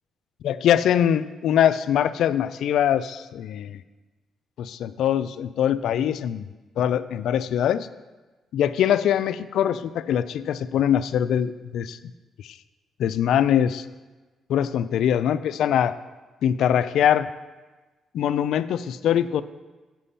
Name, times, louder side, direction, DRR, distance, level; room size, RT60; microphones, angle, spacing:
voice 1, 0.4-3.8 4.6-6.4 6.8-7.9 8.5-12.0 12.4-12.5 13.0-13.8 14.5-15.9 16.4-17.3 18.1-19.4, left 9 dB, 75° left, 14 dB, 0.4 m, -22 dB
8.4 x 6.0 x 5.5 m, 1.2 s
cardioid pair, 90°, 0 cm